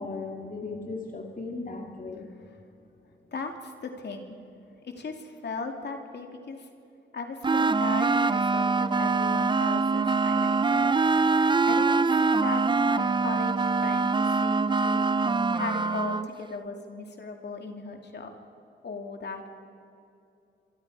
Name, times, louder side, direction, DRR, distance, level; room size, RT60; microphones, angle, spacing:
voice 1, 0.0-2.3, left 3 dB, 45° left, 1 dB, 2.3 m, -36 dB
voice 2, 3.3-4.4 4.7-6.7 7.1-11.0 11.7-15.1 15.5-18.3 18.8-19.5, left 4 dB, 60° left, 3 dB, 2.8 m, -37 dB
sound 1, 7.4-16.3, right 4 dB, 25° right, 0.6 m, -24 dB
26.0 x 24.0 x 5.0 m, 2.7 s
cardioid pair, 80°, 20 cm